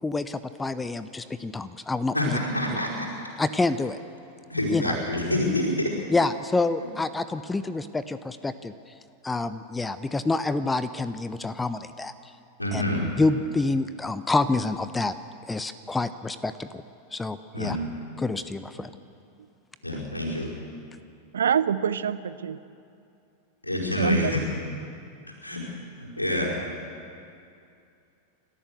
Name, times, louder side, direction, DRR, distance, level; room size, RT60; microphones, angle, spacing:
voice 1, 0.0-2.4 3.4-4.0 4.7-5.0 6.1-8.7 9.2-12.1 12.7-12.8 13.2-15.1 15.5-16.7 17.1-17.8 18.2-18.9, left 3 dB, 10° left, 13 dB, 0.6 m, -27 dB
voice 2, 2.1-3.1 4.5-5.9 12.6-13.0 17.5-17.9 19.8-20.5 23.6-24.4 25.4-25.6 26.0-26.5, left 1 dB, 85° left, -3 dB, 5.1 m, -27 dB
voice 3, 21.3-22.6 24.0-24.3, right 8 dB, 65° right, 15 dB, 0.7 m, -25 dB
30.0 x 13.5 x 6.8 m, 2.5 s
figure-of-eight pair, 90°, 0 cm